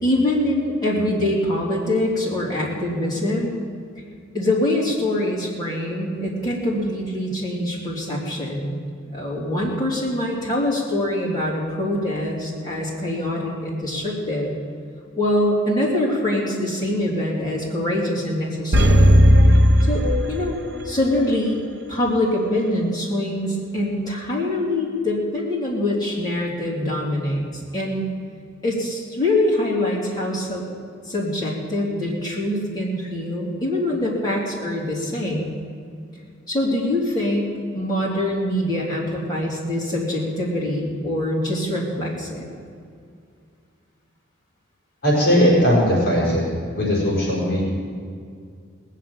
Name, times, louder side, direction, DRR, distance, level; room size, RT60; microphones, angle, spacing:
voice 1, 0.0-3.5 4.3-8.8 9.1-14.5 15.2-19.2 19.9-20.5 20.8-28.1 28.6-30.6 31.1-35.5 36.5-42.5, left 1 dB, 20° left, -5 dB, 3.4 m, -24 dB
sound 1, 18.7-20.9 21.2-21.3, equal, 55° right, 0.8 m, -15 dB
voice 2, 45.0-46.4 46.7-47.7, equal, 50° left, -5 dB, 5.0 m, -18 dB
19.0 x 7.5 x 9.0 m, 2.3 s
head